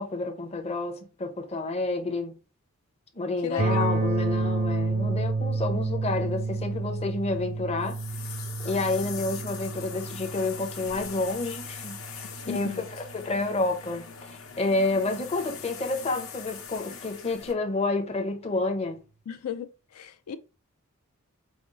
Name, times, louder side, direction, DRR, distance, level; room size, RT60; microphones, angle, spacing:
voice 1, 0.0-2.3 3.1-8.0 8.6-12.8 13.1-19.0, left 2 dB, 30° left, 0.6 m, -29 dB
voice 2, 3.4-3.9 12.2-12.8 19.3-20.4, left 8 dB, 80° left, 0.4 m, -36 dB
sound 1, 3.6-13.5, right 3 dB, 30° right, 0.4 m, -30 dB
sound 2, 6.3-17.5, left 6 dB, 60° left, 0.9 m, -42 dB
5.1 x 2.0 x 3.7 m
head